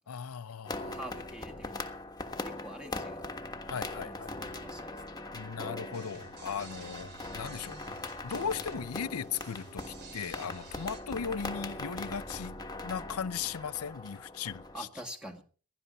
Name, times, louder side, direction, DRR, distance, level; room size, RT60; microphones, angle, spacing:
voice 1, 0.1-1.0 3.7-4.3 5.3-7.9 8.2-12.6 12.8-14.9, left 7 dB, 85° left, 0.6 m, -37 dB
sound 1, 0.6-14.8, left 2 dB, 20° left, 1.4 m, -41 dB
voice 2, 0.7-1.9 2.4-3.2 4.0-5.2 14.7-15.4, right 1 dB, 5° right, 1.8 m, -46 dB
sound 2, 5.9-11.0, right 4 dB, 50° right, 2.8 m, -51 dB
16.5 x 11.5 x 5.2 m
head